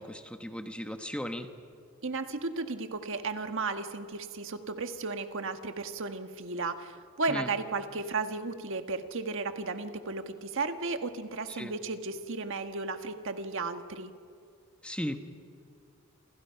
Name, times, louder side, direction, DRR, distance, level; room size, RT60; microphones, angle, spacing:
voice 1, 0.0-1.5 7.3-7.5 11.6-11.7 14.8-15.2, equal, 5° left, 6 dB, 1.2 m, -36 dB
voice 2, 2.0-14.1, right 3 dB, 60° right, 7 dB, 1.6 m, -34 dB
28.5 x 27.5 x 5.8 m, 2.3 s
head